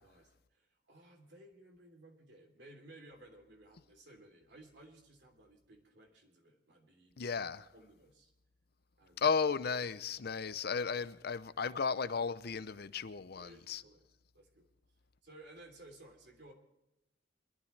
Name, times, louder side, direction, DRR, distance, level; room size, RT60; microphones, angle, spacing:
voice 1, 0.0-7.4 7.7-8.3 9.0-9.4 13.4-14.1 14.3-14.7 15.2-16.5, right 1 dB, 65° right, 3.4 m, -58 dB
voice 2, 7.2-7.7 9.2-13.8, left 5 dB, 60° left, 0.6 m, -34 dB
23.5 x 12.5 x 3.3 m
head